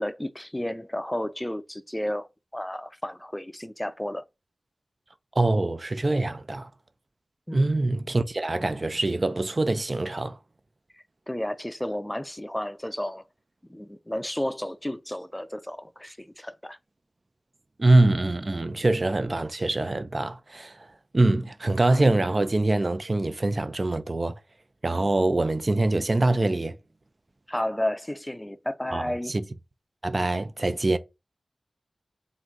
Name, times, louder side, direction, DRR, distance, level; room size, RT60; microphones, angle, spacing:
voice 1, 0.0-4.2 7.5-7.7 11.3-13.2 13.7-16.8 27.5-29.3, left 1 dB, 10° left, 0.5 m, -32 dB
voice 2, 5.4-6.7 7.5-10.4 17.8-20.8 21.1-24.3 24.8-26.8 28.9-29.4 30.0-31.0, right 2 dB, 45° right, 0.4 m, -24 dB
3.8 x 2.6 x 4.4 m
cardioid pair, 50°, 0 cm